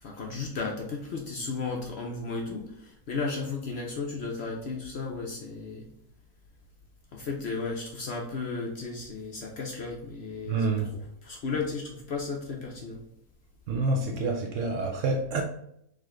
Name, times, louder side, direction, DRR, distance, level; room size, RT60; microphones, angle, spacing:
voice 1, 0.0-5.9 7.1-13.0, left 4 dB, 55° left, 0.8 m, -34 dB
voice 2, 10.5-10.9 13.7-15.4, right 3 dB, 65° right, 0.8 m, -27 dB
4.9 x 2.5 x 3.6 m
omnidirectional pair, 1.6 m